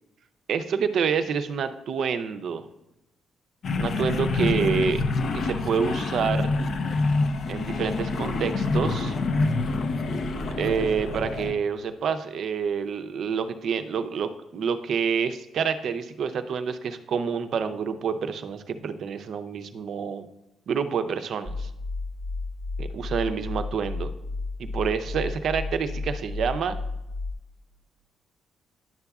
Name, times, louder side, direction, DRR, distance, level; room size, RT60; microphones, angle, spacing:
voice 1, 0.5-2.7 3.8-5.0 5.3-6.5 7.5-9.2 10.6-20.3 20.7-21.7 22.8-24.1 24.6-26.8, right 6 dB, 65° right, 10 dB, 0.6 m, -28 dB
sound 1, 3.6-11.5, left 3 dB, 60° left, 0.7 m, -26 dB
sound 2, 21.4-27.3, left 3 dB, 35° left, 0.9 m, -33 dB
10.5 x 6.8 x 2.4 m, 0.92 s
cardioid pair, 90°, 0 cm